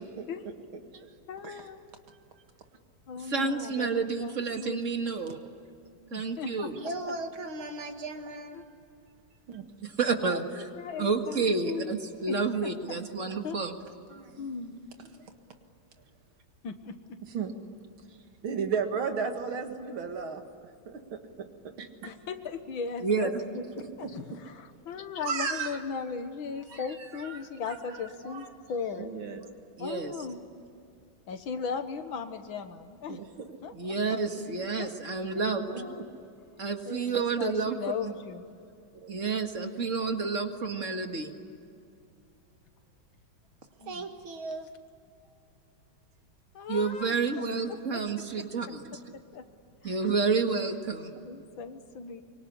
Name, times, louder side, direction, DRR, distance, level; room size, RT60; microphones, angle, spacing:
voice 1, 1.3-1.8 3.1-4.8 6.1-6.7 7.0-7.1 8.5-8.6 10.2-12.0 12.3-12.7 13.4-13.6 14.4-14.8 16.6-17.2 22.0-29.1 29.8-30.4 31.3-33.2 33.6-34.0 34.8-34.9 35.3-36.1 36.9-38.5 43.8-44.1 46.5-47.1 47.7-48.7 49.1-49.4 49.8-50.1 51.2-52.2, left 6 dB, 80° left, 9 dB, 2.2 m, -38 dB
voice 2, 3.3-5.4 6.1-6.7 9.8-10.7 11.0-13.7 23.0-23.3 29.8-30.1 33.7-35.7 36.6-38.1 39.1-41.3 46.7-48.9 49.8-51.1, right 4 dB, 40° right, 5 dB, 2.0 m, -29 dB
voice 3, 6.7-8.6 9.5-9.6 14.1-14.5 15.1-15.2 17.3-17.6 18.1-18.2 18.4-21.9 24.0-24.1 25.2-25.8 26.7-26.8 27.1-27.8 28.2-28.5 29.0-29.5 33.1-33.3 35.7-36.0 39.0-39.1 43.8-44.7, right 5 dB, 85° right, 6 dB, 2.6 m, -35 dB
25.0 x 23.5 x 10.0 m, 2.5 s
omnidirectional pair, 2.2 m